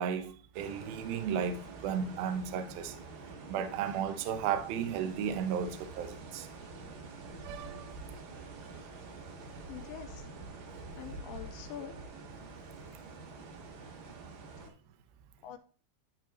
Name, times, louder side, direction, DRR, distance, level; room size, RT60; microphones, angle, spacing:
voice 1, 0.0-3.0 3.5-6.5 7.4-7.9, right 7 dB, 80° right, 2.1 m, -34 dB
sound 1, 0.5-14.7, right 3 dB, 65° right, 3.5 m, -47 dB
voice 2, 9.7-10.2 11.0-12.0 15.4-15.6, left 10 dB, 80° left, 2.9 m, -44 dB
12.0 x 4.4 x 3.1 m
omnidirectional pair, 5.3 m